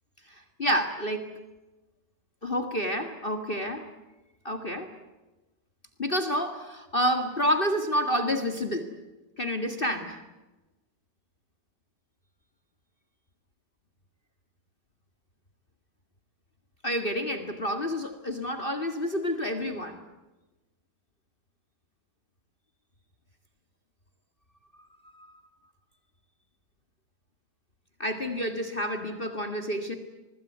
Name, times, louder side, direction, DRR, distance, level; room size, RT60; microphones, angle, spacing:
voice 1, 0.3-1.3 2.4-3.9 4.4-4.9 6.0-8.9 9.4-10.2 16.8-20.0 25.1-25.3 28.0-29.9, equal, 30° left, 9 dB, 2.1 m, -29 dB
24.5 x 21.0 x 9.4 m, 1.1 s
omnidirectional pair, 1.9 m